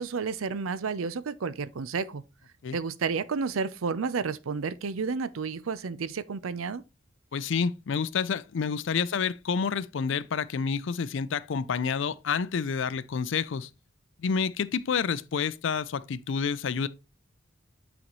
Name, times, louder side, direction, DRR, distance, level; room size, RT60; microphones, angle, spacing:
voice 1, 0.0-2.2 2.7-6.8, right 5 dB, 85° right, 0.5 m, -31 dB
voice 2, 7.3-13.7 14.2-16.9, left 6 dB, 65° left, 0.4 m, -29 dB
8.9 x 4.0 x 3.0 m
head